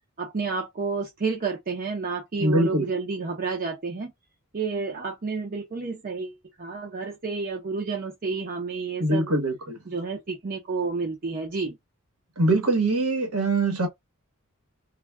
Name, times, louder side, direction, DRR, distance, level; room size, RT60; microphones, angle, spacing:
voice 1, 0.2-4.1 4.5-9.3 9.9-11.8, right 4 dB, 40° right, 0.6 m, -30 dB
voice 2, 2.4-2.9 9.0-9.8 12.4-13.9, right 2 dB, 90° right, 1.1 m, -23 dB
2.3 x 2.2 x 3.3 m
head